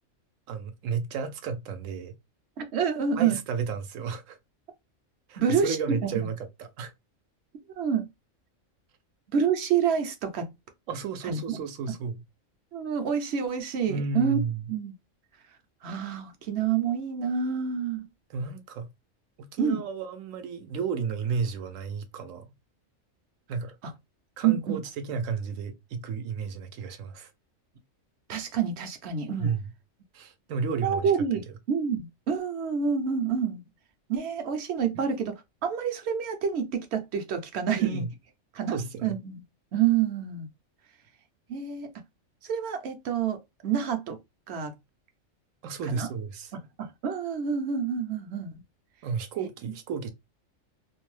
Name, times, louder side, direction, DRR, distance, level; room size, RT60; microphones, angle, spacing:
voice 1, 0.5-2.1 3.2-4.4 5.3-6.9 10.9-12.2 13.9-14.7 18.3-18.9 19.4-22.5 23.5-23.7 24.4-27.3 29.4-29.7 30.1-31.1 31.5-31.6 34.9-35.0 37.7-38.1 38.7-39.2 45.6-46.5 49.0-50.1, right 5 dB, 85° right, 1.0 m, -33 dB
voice 2, 2.6-3.4 5.4-5.8 6.0-6.1 7.7-8.1 9.3-10.5 11.2-11.6 12.7-14.4 14.7-14.9 15.8-18.0 19.6-19.8 23.8-23.9 24.4-24.8 28.3-29.5 30.8-33.7 34.1-35.4 35.6-38.0 38.5-38.7 39.0-39.4 39.7-40.5 41.5-41.9 42.4-44.2 44.5-44.7 45.9-46.1 46.8-48.6, right 7 dB, 65° right, 0.8 m, -28 dB
2.6 x 2.1 x 3.1 m
omnidirectional pair, 1.4 m